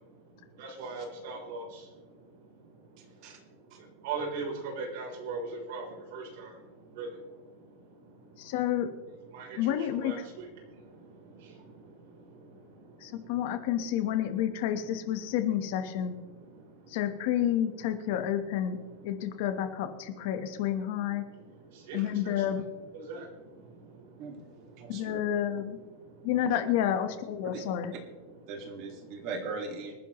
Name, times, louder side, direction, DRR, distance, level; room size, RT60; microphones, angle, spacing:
voice 1, 0.6-1.6 4.0-5.8 6.1-6.5 7.0-7.1 9.3-10.1 21.9-22.0 23.1-23.2, right 4 dB, 50° right, 0 dB, 3.6 m, -37 dB
voice 2, 8.4-8.9 9.6-10.2 13.0-16.2 16.9-18.8 19.0-21.2 21.9-22.7 24.9-25.8 26.2-27.9, left 10 dB, 45° left, 9 dB, 1.1 m, -30 dB
voice 3, 24.2-24.5 24.8-25.2 27.5-27.6 28.5-29.9, right 4 dB, 35° right, 4 dB, 1.8 m, -39 dB
25.5 x 9.9 x 3.1 m, 1.3 s
supercardioid pair, 180°, 0 cm